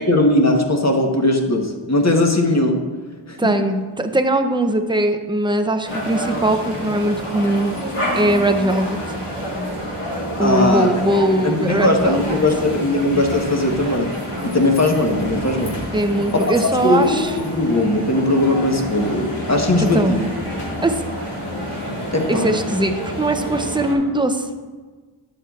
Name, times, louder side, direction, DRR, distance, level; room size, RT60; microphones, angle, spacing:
voice 1, 0.0-2.8 3.3-3.7 10.4-10.9 11.4-14.1 14.4-15.7 16.3-16.5 16.8-20.3 22.1-22.6, left 1 dB, 30° left, 1 dB, 1.1 m, -19 dB
voice 2, 3.4-7.8 8.1-9.0 10.4-12.4 15.9-17.3 19.9-20.2 20.8-21.0 22.3-24.5, right 1 dB, 10° right, 7 dB, 0.5 m, -20 dB
sound 1, 5.9-23.9, equal, 85° left, 1.9 m, -28 dB
12.0 x 7.6 x 2.4 m, 1.4 s
wide cardioid pair, 55°, 50 cm